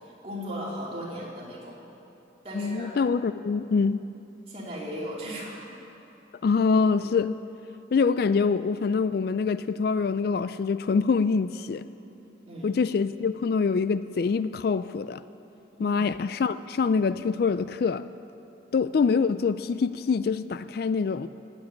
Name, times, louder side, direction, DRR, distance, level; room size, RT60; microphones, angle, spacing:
voice 1, 0.2-1.8 2.4-2.9 4.5-5.8 12.5-12.7 15.8-16.0, equal, 30° right, -5 dB, 3.0 m, -36 dB
voice 2, 2.5-4.0 6.4-7.3 7.9-11.8 12.6-15.2 15.8-18.1 18.7-21.3, left 5 dB, 55° left, 14 dB, 0.3 m, -25 dB
18.5 x 7.3 x 8.7 m, 2.9 s
head